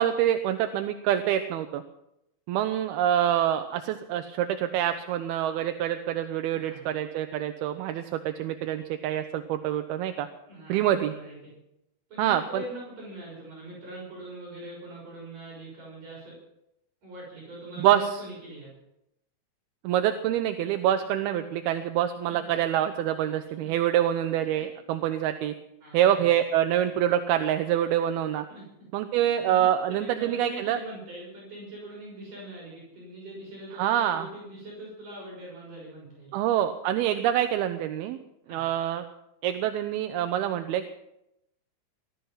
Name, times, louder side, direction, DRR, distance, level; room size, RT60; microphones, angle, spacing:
voice 1, 0.0-1.8 2.5-10.3 10.7-11.1 12.2-12.6 17.8-18.0 19.8-25.5 25.9-28.5 28.9-30.8 33.8-34.3 36.3-38.2 38.5-39.0 39.4-40.9, right 11 dB, 80° right, 8 dB, 2.7 m, -26 dB
voice 2, 6.5-6.8 10.5-11.5 12.1-16.4 17.0-18.7 22.3-22.6 23.6-23.7 24.5-24.6 25.8-26.3 28.5-28.7 29.1-36.4 38.5-38.6, right 1 dB, 55° right, -4 dB, 8.0 m, -42 dB
20.0 x 13.0 x 5.6 m, 0.84 s
omnidirectional pair, 4.5 m